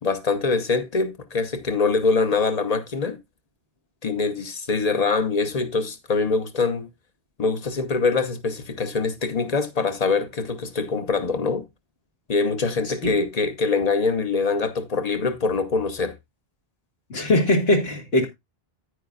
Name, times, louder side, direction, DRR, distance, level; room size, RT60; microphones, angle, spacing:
voice 1, 0.0-3.2 4.0-6.9 7.4-11.7 12.3-16.2, left 4 dB, 40° left, 1.0 m, -24 dB
voice 2, 17.1-18.3, left 1 dB, 75° left, 2.1 m, -20 dB
9.7 x 9.4 x 2.4 m
omnidirectional pair, 1.0 m